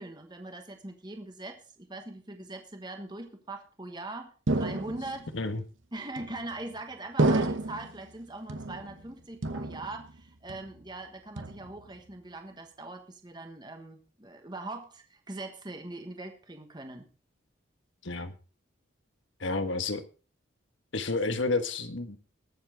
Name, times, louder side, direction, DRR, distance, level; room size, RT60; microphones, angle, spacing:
voice 1, 0.0-5.3 5.9-17.1, right 2 dB, 20° right, 5 dB, 1.3 m, -41 dB
sound 1, 4.5-5.3 6.2-6.7 7.2-8.0 8.5-9.1 9.4-10.2 10.5-10.9 11.4-12.0, right 2 dB, 75° right, 1.0 m, -30 dB
voice 2, 19.4-20.0 20.9-22.2, left 3 dB, 70° left, 9 dB, 1.3 m, -30 dB
21.0 x 7.3 x 3.7 m, 0.36 s
head